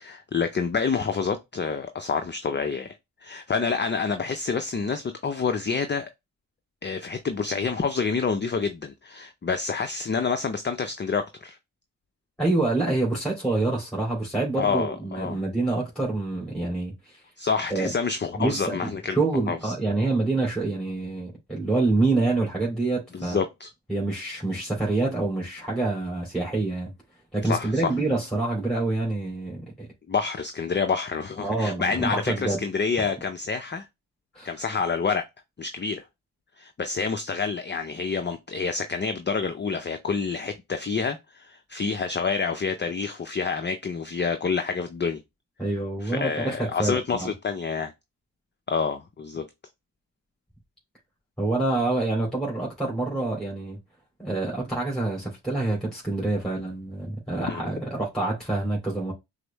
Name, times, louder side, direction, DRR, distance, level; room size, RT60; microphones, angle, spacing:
voice 1, 0.0-2.9 3.2-6.1 6.8-11.6 14.6-15.4 17.4-19.2 19.5-19.7 23.1-23.7 27.4-27.8 30.1-33.9 34.4-35.2 35.6-36.0 36.6-45.2 46.0-47.9 48.7-49.4 57.5-57.6, left 5 dB, 25° left, 0.5 m, -28 dB
voice 2, 12.4-16.9 17.7-17.9 18.3-23.4 23.9-26.9 27.3-29.6 31.4-32.6 34.3-34.5 45.6-47.3 51.4-53.8 54.2-59.1, right 2 dB, ahead, 2.5 m, -26 dB
6.1 x 2.1 x 2.9 m
hypercardioid pair, 40°, 49 cm